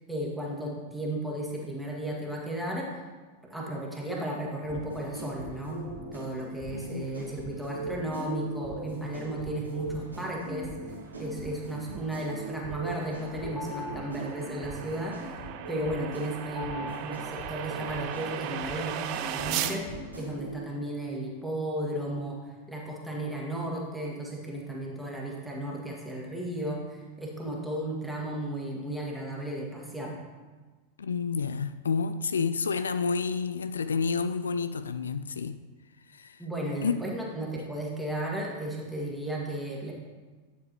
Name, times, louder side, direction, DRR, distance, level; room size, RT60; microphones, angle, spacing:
voice 1, 0.1-2.9 3.4-5.8 6.1-10.7 11.2-19.8 20.2-22.4 22.7-30.2 36.4-39.9, right 1 dB, ahead, -3 dB, 1.8 m, -34 dB
sound 1, 4.6-20.6, right 1 dB, 80° right, 1.9 m, -40 dB
voice 2, 6.7-7.1 31.0-35.6 36.1-36.4 36.8-37.0, left 5 dB, 70° left, 11 dB, 0.3 m, -29 dB
sound 2, 11.1-19.8, right 10 dB, 45° right, 0.5 m, -38 dB
sound 3, 12.4-18.8, left 4 dB, 25° left, 1.5 m, -46 dB
9.4 x 7.8 x 3.0 m, 1.3 s
figure-of-eight pair, 90°, 0 cm